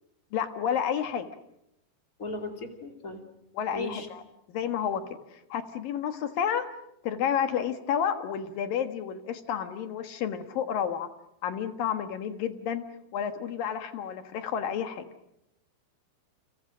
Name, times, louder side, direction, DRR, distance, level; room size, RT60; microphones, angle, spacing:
voice 1, 0.3-1.3 3.5-4.2 4.5-5.0 5.5-6.7 7.0-11.1 11.4-12.8 13.1-15.0, left 8 dB, 65° left, 8 dB, 2.8 m, -30 dB
voice 2, 2.2-3.2 3.7-4.1, left 2 dB, 25° left, 4 dB, 2.3 m, -36 dB
29.5 x 28.0 x 6.3 m, 0.81 s
omnidirectional pair, 5.1 m